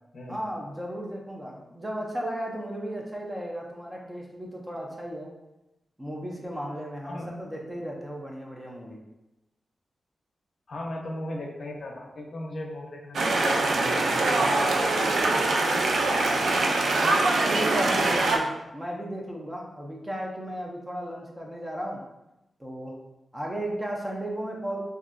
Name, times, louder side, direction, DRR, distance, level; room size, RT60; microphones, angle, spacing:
voice 1, 0.3-5.3 6.0-9.0 17.0-22.0 22.6-23.0 23.3-24.8, equal, 15° right, -1 dB, 0.5 m, -35 dB
voice 2, 10.7-15.8, left 1 dB, 60° left, 0 dB, 0.5 m, -38 dB
sound 1, 13.1-18.4, right 2 dB, 85° right, 0.3 m, -23 dB
2.9 x 2.5 x 2.5 m, 0.93 s
wide cardioid pair, 110°, 0 cm